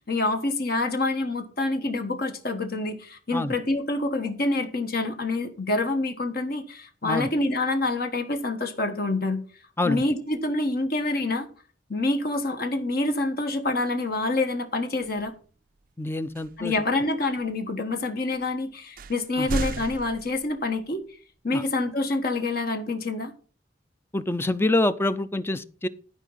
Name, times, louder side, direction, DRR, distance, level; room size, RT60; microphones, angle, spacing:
voice 1, 0.0-9.4 9.8-11.5 11.9-15.3 16.6-21.0 21.4-23.3, left 2 dB, 55° left, 1.3 m, -27 dB
sound 1, 15.0-15.3 16.3-16.7 17.4-17.5 18.3-18.4 19.0-20.9, right 3 dB, 50° right, 0.4 m, -34 dB
voice 2, 16.0-16.8 19.4-19.5 21.5-21.6 24.1-25.9, left 2 dB, 15° left, 0.5 m, -26 dB
12.5 x 5.0 x 5.6 m
head